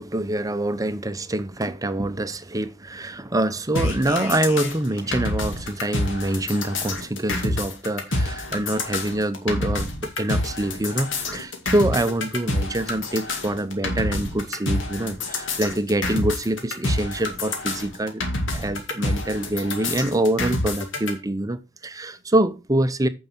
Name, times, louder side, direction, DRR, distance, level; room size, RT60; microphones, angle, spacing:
voice 1, 0.0-18.2 18.5-23.1, right 1 dB, 20° right, 0.7 m, -25 dB
sound 1, 3.7-21.1, left 2 dB, 70° left, 2.3 m, -27 dB
9.1 x 5.5 x 5.9 m
head